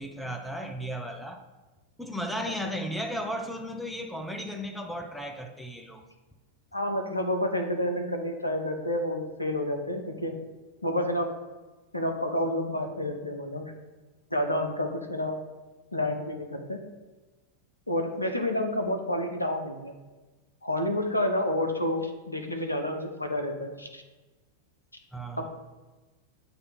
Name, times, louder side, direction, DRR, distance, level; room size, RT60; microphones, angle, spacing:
voice 1, 0.0-1.4 2.0-6.0 25.1-25.5, equal, 5° left, 4 dB, 0.6 m, -35 dB
voice 2, 6.7-10.3 10.8-11.3 11.9-13.7 14.3-15.4 15.9-16.8 17.9-20.0 20.6-24.0 25.4-25.5, left 1 dB, 85° left, 4 dB, 0.7 m, -29 dB
6.9 x 2.7 x 5.6 m, 1.2 s
figure-of-eight pair, 90°, 0 cm